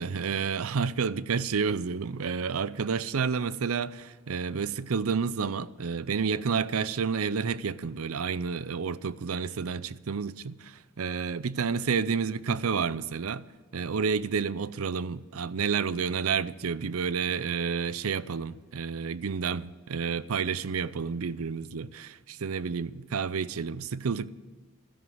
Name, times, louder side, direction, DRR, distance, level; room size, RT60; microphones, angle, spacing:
voice 1, 0.0-13.4 13.7-24.3, right 5 dB, 85° right, 0.5 m, -30 dB
13.0 x 10.5 x 7.9 m
head